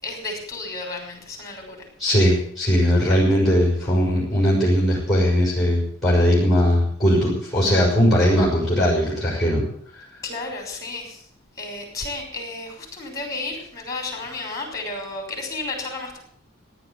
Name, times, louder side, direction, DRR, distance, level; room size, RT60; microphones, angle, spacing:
voice 1, 0.0-1.9 10.2-11.2 11.6-16.2, left 3 dB, 15° left, 2 dB, 5.9 m, -32 dB
voice 2, 2.0-9.7 10.0-10.1, equal, ahead, -5 dB, 5.7 m, -19 dB
17.0 x 10.0 x 8.0 m, 0.63 s
head